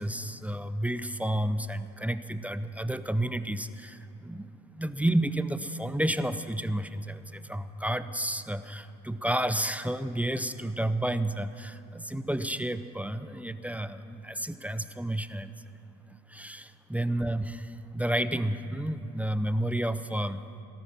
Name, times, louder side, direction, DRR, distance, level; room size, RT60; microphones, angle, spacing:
voice 1, 0.0-4.5 4.7-15.5 16.3-20.4, right 1 dB, 5° right, 12 dB, 0.7 m, -31 dB
18.0 x 13.0 x 5.9 m, 2.6 s
hypercardioid pair, 65°, 34 cm